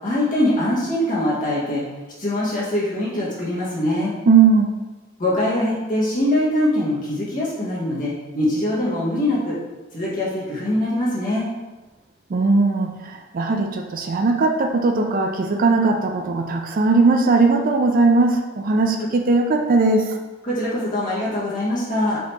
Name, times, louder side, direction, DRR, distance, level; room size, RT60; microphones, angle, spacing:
voice 1, 0.0-1.8 2.2-4.1 5.2-9.6 9.9-11.5 20.4-22.2, left 1 dB, 40° left, -8 dB, 1.5 m, -23 dB
voice 2, 4.3-4.7 12.3-20.2, right 3 dB, 40° right, 3 dB, 0.4 m, -18 dB
4.9 x 2.9 x 3.4 m, 1.2 s
head